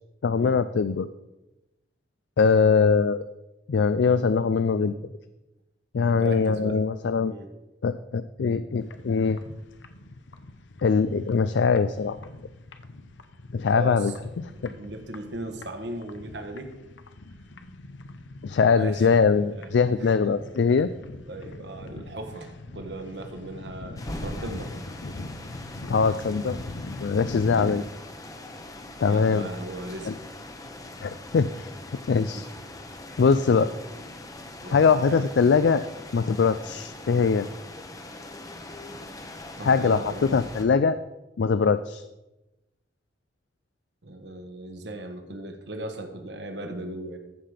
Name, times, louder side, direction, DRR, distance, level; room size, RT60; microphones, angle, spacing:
voice 1, 0.2-1.1 2.4-3.2 3.7-4.9 5.9-7.3 7.8-9.4 10.8-12.2 13.5-14.1 14.6-14.7 18.4-20.9 25.9-26.6 27.0-27.8 29.0-29.5 30.1-30.2 31.0-31.7 32.1-32.5 33.2-33.7 34.7-35.8 36.1-37.5 39.6-40.0 40.3-41.0 41.4-42.0, left 5 dB, 70° left, 13 dB, 0.4 m, -22 dB
voice 2, 6.1-6.8 7.3-7.5 13.7-14.1 14.5-16.8 18.8-19.1 19.6-19.7 20.0-20.4 21.3-24.8 27.5-27.8 29.1-30.1 32.3-32.5 33.7-33.8 34.6-35.3 39.6-40.4 44.0-47.2, right 1 dB, 65° right, 5 dB, 1.4 m, -38 dB
sound 1, 8.8-27.8, left 2 dB, 85° left, 0.8 m, -42 dB
sound 2, 24.0-40.6, left 1 dB, 20° left, 0.9 m, -41 dB
14.5 x 5.8 x 5.0 m, 0.99 s
head